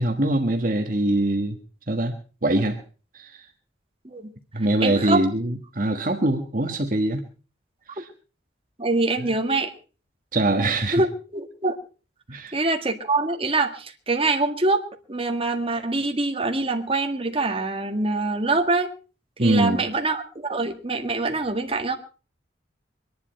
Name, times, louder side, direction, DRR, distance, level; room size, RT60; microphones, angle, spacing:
voice 1, 0.0-1.6 1.9-2.1 2.4-2.8 3.1-3.5 4.5-7.2 7.9-8.0 10.3-11.0 12.3-12.5 19.4-19.8, right 1 dB, 45° right, 4 dB, 1.5 m, -23 dB
voice 2, 4.8-5.3 8.0-8.1 8.8-9.7 10.9-11.8 12.5-14.8 15.1-18.9 19.4-21.9, right 3 dB, 30° right, 4 dB, 1.8 m, -24 dB
24.0 x 11.0 x 4.4 m, 0.36 s
head